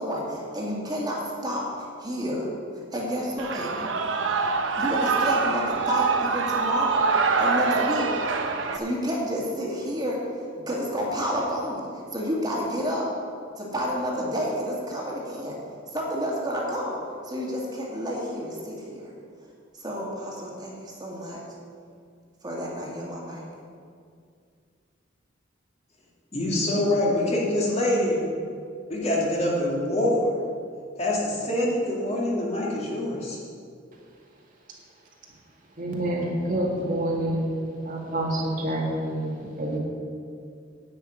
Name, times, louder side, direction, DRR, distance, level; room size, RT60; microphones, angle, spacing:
voice 1, 0.0-2.5 2.9-3.9 4.8-7.1 7.4-8.1 8.7-10.2 10.7-13.1 13.6-15.6 15.9-19.1 19.7-21.4 22.4-23.4, equal, 20° right, -3 dB, 2.2 m, -30 dB
Shout / Cheering, 3.4-8.8, right 4 dB, 85° right, 0.9 m, -24 dB
voice 2, 26.3-28.2 28.9-30.2 31.0-33.4, left 1 dB, 35° left, -5 dB, 2.5 m, -25 dB
voice 3, 35.8-37.5 37.8-39.8, right 1 dB, 45° right, -2 dB, 1.9 m, -27 dB
10.0 x 6.2 x 8.8 m, 2.3 s
head